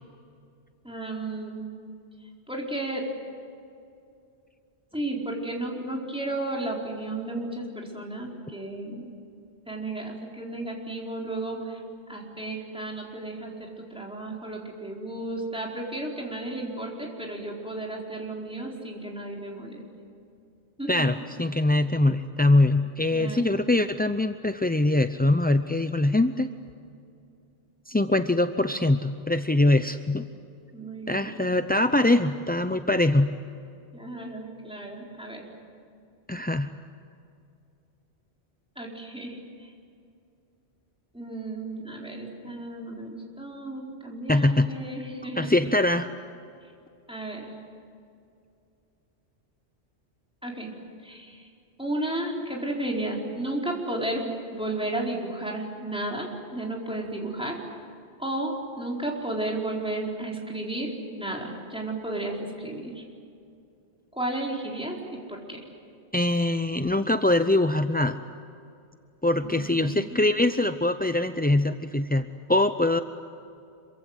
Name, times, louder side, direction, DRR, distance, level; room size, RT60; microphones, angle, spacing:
voice 1, 0.8-1.7 2.5-3.1 4.9-9.1 9.7-11.8 12.1-19.8 20.8-21.1 23.1-23.5 30.7-31.3 33.9-35.4 38.8-39.7 41.1-45.6 47.1-47.5 50.4-50.8 51.0-51.5 51.8-57.6 58.2-63.0 64.1-65.6 69.4-70.3, right 2 dB, 5° right, -2 dB, 4.4 m, -33 dB
voice 2, 20.9-26.5 27.9-30.3 31.1-33.3 36.3-36.7 44.3-44.7 45.4-46.1 66.1-68.2 69.2-73.0, left 2 dB, 15° left, 9 dB, 0.4 m, -23 dB
26.5 x 24.0 x 8.1 m, 2.6 s
omnidirectional pair, 1.1 m